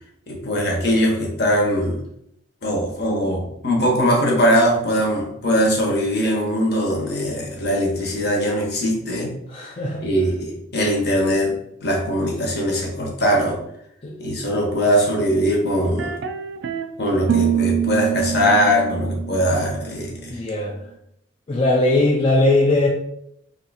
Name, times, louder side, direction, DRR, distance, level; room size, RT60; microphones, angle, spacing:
voice 1, 0.3-2.0 2.6-9.3 10.0-13.6 14.2-16.1 17.0-20.4, equal, 60° left, -1 dB, 1.0 m, -21 dB
voice 2, 9.5-10.0 14.0-14.1 20.3-20.7 21.5-22.9, left 2 dB, 30° left, -3 dB, 0.4 m, -19 dB
sound 1, 15.8-16.9 17.2-20.2, right 9 dB, 70° right, 0.3 m, -25 dB
2.7 x 2.4 x 4.0 m, 0.75 s
head